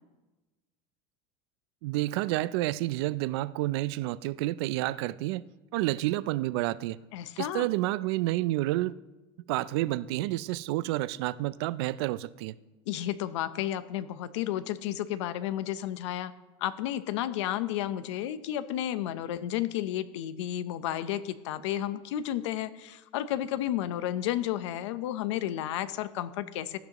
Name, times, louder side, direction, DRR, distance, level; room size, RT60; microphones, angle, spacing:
voice 1, 1.8-5.4 5.7-7.0 7.4-9.0 9.5-12.5, right 17 dB, 60° right, 0.4 m, -29 dB
voice 2, 7.1-7.7 12.9-16.3 16.6-26.8, left 12 dB, 80° left, 0.8 m, -32 dB
16.5 x 12.5 x 3.0 m
supercardioid pair, 170°, 15 cm